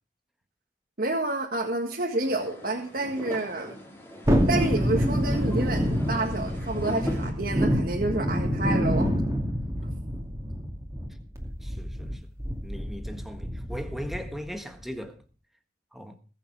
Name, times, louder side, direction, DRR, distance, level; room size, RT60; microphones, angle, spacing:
voice 1, 1.0-3.7 4.5-9.1, right 2 dB, 55° right, 1.8 m, -29 dB
sound 1, 2.2-7.3, left 1 dB, 15° left, 2.9 m, -40 dB
Thunderstorm, 4.3-14.5 14.8-14.9, equal, 15° right, 2.4 m, -27 dB
voice 2, 11.6-12.2 12.6-15.2 15.9-16.2, equal, ahead, 1.5 m, -38 dB
21.0 x 7.1 x 4.8 m
head